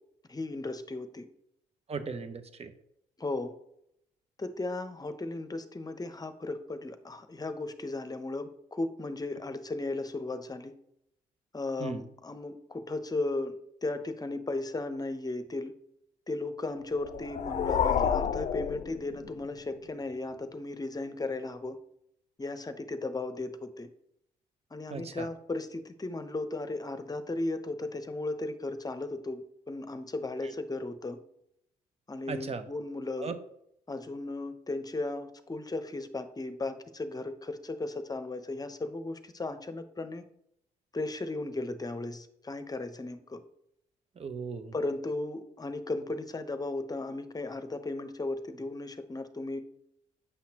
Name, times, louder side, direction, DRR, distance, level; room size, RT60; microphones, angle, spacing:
voice 1, 0.3-1.3 3.2-3.5 4.4-10.7 11.5-13.5 13.8-15.7 16.3-21.8 22.4-23.9 24.7-31.2 32.1-33.3 33.9-40.2 40.9-43.4 44.7-49.6, left 2 dB, 25° left, 10 dB, 0.9 m, -36 dB
voice 2, 1.9-2.7 11.8-12.0 24.9-25.3 30.4-30.5 32.3-32.7 33.1-33.4 44.1-44.7, right 5 dB, 40° right, 9 dB, 1.0 m, -37 dB
sound 1, 17.0-19.6, left 7 dB, 50° left, 0.6 m, -30 dB
8.3 x 5.7 x 2.9 m, 0.75 s
supercardioid pair, 55°, 16 cm